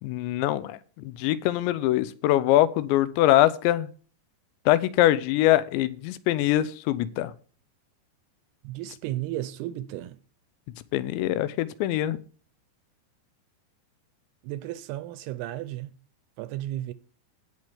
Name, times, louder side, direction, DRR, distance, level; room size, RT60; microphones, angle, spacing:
voice 1, 0.0-3.9 4.7-7.3 10.9-12.2, left 14 dB, 90° left, 3.0 m, -23 dB
voice 2, 8.6-10.2 14.4-15.9 16.4-16.9, right 14 dB, 80° right, 2.4 m, -34 dB
17.0 x 6.5 x 3.5 m
omnidirectional pair, 5.1 m